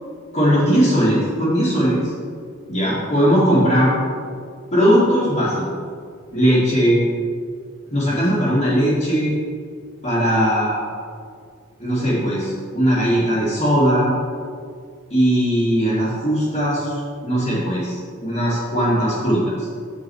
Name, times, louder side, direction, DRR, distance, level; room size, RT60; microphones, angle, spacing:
voice 1, 0.3-2.1 2.7-3.9 4.7-5.5 6.3-7.0 7.9-9.3 10.0-10.8 11.8-14.2 15.1-19.4, equal, 30° left, -12 dB, 2.1 m, -19 dB
8.3 x 7.3 x 4.7 m, 2.1 s
head